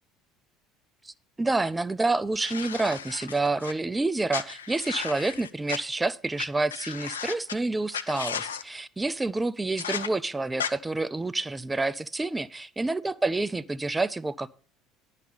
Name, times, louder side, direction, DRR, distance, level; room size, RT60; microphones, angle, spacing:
voice 1, 1.0-14.5, right 2 dB, 15° right, 0.4 m, -28 dB
sound 1, 2.3-3.7 4.3-5.8 6.4-6.5 6.7-7.5 7.9-8.6 9.8-10.1 10.6-10.7, left 7 dB, 80° left, 0.4 m, -34 dB
10.5 x 4.1 x 6.7 m
figure-of-eight pair, 65°, 0 cm